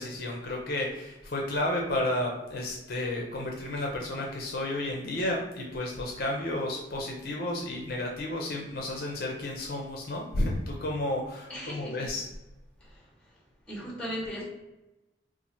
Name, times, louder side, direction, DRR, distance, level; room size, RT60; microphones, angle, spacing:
voice 1, 0.0-12.3, left 1 dB, 50° left, -1 dB, 0.5 m, -32 dB
voice 2, 11.5-12.2 12.8-13.4 13.7-14.4, equal, 5° left, -4 dB, 1.0 m, -38 dB
2.7 x 2.5 x 4.2 m, 0.99 s
head